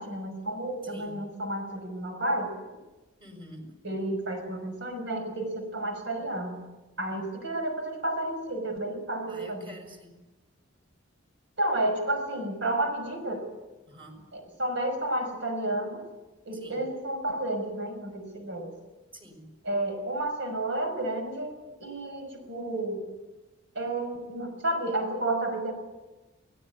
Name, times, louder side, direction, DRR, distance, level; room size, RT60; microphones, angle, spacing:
voice 1, 0.0-2.5 3.8-6.6 7.0-9.7 11.6-13.5 14.3-16.0 16.4-18.7 19.6-21.5 21.8-23.0 23.7-25.7, right 1 dB, 65° right, 6 dB, 5.5 m, -31 dB
voice 2, 0.8-1.2 3.2-3.7 9.3-10.2 13.9-14.2 16.5-16.8 19.1-19.5, equal, 25° right, 4 dB, 5.6 m, -47 dB
23.0 x 17.5 x 8.5 m, 1.1 s
head